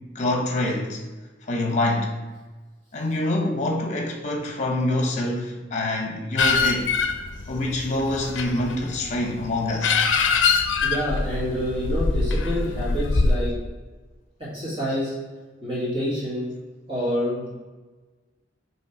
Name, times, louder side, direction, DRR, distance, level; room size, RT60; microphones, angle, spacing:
voice 1, 0.1-1.0 1.5-2.1 2.9-6.9 7.5-10.0 14.9-15.0, left 1 dB, 40° left, 1 dB, 0.9 m, -26 dB
sound 1, 6.4-13.4, left 4 dB, 75° left, 0.5 m, -24 dB
voice 2, 10.8-13.5 14.4-15.1 15.6-16.5 16.9-17.5, equal, 30° right, -8 dB, 2.0 m, -27 dB
6.1 x 3.3 x 4.8 m, 1.3 s
head